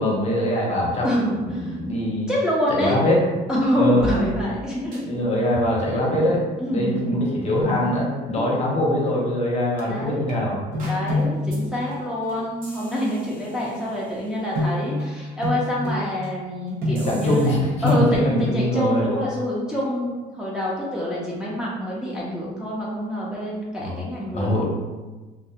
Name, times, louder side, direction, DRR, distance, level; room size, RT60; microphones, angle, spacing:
voice 1, 0.0-2.3 2.8-3.2 3.8-4.1 5.0-6.4 6.7-10.6 16.9-19.1 23.8-23.9 24.3-24.6, left 1 dB, 40° left, -3 dB, 0.7 m, -23 dB
voice 2, 1.0-1.8 2.3-3.0 3.5-5.3 6.6-7.2 9.9-10.3 10.8-17.5 17.8-24.6, equal, 5° right, -6 dB, 0.4 m, -26 dB
sound 1, 4.0-4.6 4.9-5.0 5.5-5.9 6.2-6.4 7.0-7.1 7.7-8.0 8.4-8.5 9.1-9.2 9.8-9.9 10.3-10.4 10.8-11.0 11.5-11.6 11.9-12.2 12.6-14.5 17.0-17.5 17.9-18.0, right 1 dB, 55° right, 0.7 m, -36 dB
sound 2, 10.7-11.9 12.3-12.5 14.6-15.1 15.4-16.3 16.8-17.0, left 1 dB, 90° right, 0.9 m, -26 dB
2.3 x 2.0 x 2.7 m, 1.3 s
cardioid pair, 110°, 17 cm